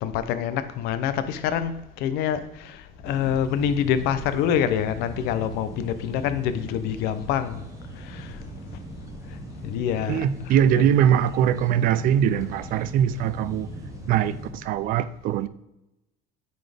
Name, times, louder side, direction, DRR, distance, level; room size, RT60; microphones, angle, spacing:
voice 1, 0.0-2.8 3.0-7.6 8.0-8.3 9.6-10.9, left 9 dB, 70° left, 12 dB, 0.6 m, -26 dB
sound 1, 3.0-14.6, left 2 dB, 5° left, 1.9 m, -44 dB
sound 2, 3.0-14.5, right 2 dB, 20° right, 0.9 m, -42 dB
voice 2, 10.1-13.7 14.1-15.5, right 9 dB, 55° right, 15 dB, 0.4 m, -22 dB
9.3 x 4.2 x 3.4 m, 0.91 s
cardioid pair, 130°, 17 cm